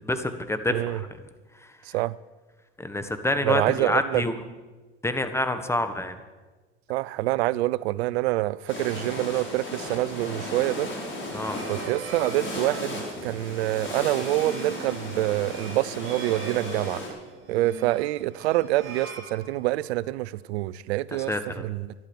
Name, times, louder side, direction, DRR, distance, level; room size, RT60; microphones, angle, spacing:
voice 1, 0.0-1.1 2.8-4.4 5.0-6.1 11.3-11.6 21.1-21.7, left 1 dB, 10° left, 1.4 m, -27 dB
voice 2, 0.7-1.0 1.9-2.1 3.4-4.2 6.9-10.9 11.7-17.0 17.5-21.3 21.6-21.9, right 17 dB, 85° right, 0.5 m, -26 dB
sound 1, 8.7-17.1, left 1 dB, 35° left, 4.9 m, -36 dB
sound 2, 10.9-20.0, right 4 dB, 40° right, 3.8 m, -42 dB
12.0 x 11.5 x 7.2 m
hypercardioid pair, 85°, 31 cm